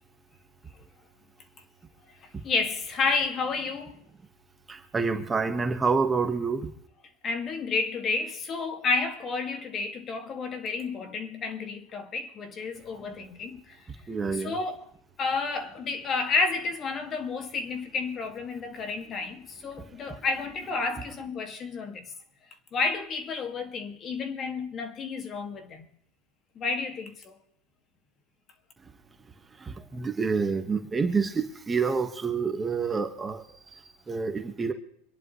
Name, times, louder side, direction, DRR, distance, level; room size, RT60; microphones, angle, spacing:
voice 1, 2.2-4.0 7.2-13.8 14.3-14.9 15.2-22.1 22.7-25.9 26.6-27.4, left 4 dB, 35° left, 2.2 m, -31 dB
voice 2, 4.7-6.7 14.1-14.5 19.7-20.1 29.6-33.8 34.1-34.7, right 5 dB, 15° right, 1.5 m, -28 dB
26.0 x 11.0 x 3.2 m
supercardioid pair, 120°, 0 cm